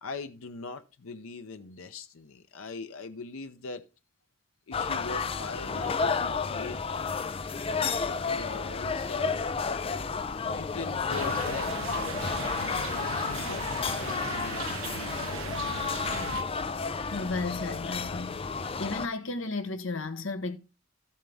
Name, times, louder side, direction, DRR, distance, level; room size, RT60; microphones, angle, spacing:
voice 1, 0.0-3.8 4.7-7.0 7.6-9.4 10.4-13.7 14.0-15.7, left 4 dB, 90° left, 0.7 m, -41 dB
sound 1, 4.7-19.1, left 5 dB, 25° left, 0.4 m, -31 dB
sound 2, 11.1-16.4, right 7 dB, 80° right, 0.5 m, -39 dB
voice 2, 17.1-18.5 18.8-20.6, left 3 dB, 70° left, 1.1 m, -33 dB
13.0 x 7.4 x 3.4 m
head